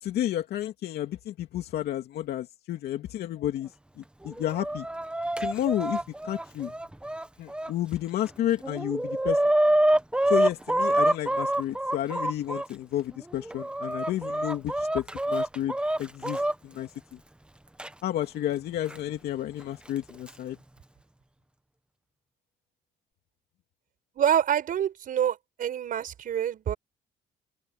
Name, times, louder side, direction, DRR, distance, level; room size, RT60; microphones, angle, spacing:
voice 1, 0.0-3.7 4.0-4.9 5.4-6.7 7.4-9.4 10.3-17.2 18.0-20.6, left 12 dB, 70° left, 2.7 m, -31 dB
Chicken rooster, 4.2-7.7 8.3-8.4 8.6-12.7 13.3-16.5 17.8-17.9 18.9-19.0 20.0-20.3, right 1 dB, 5° right, 1.2 m, -26 dB
voice 2, 24.2-26.7, right 10 dB, 55° right, 5.4 m, -26 dB
open air
cardioid pair, 110°, 17 cm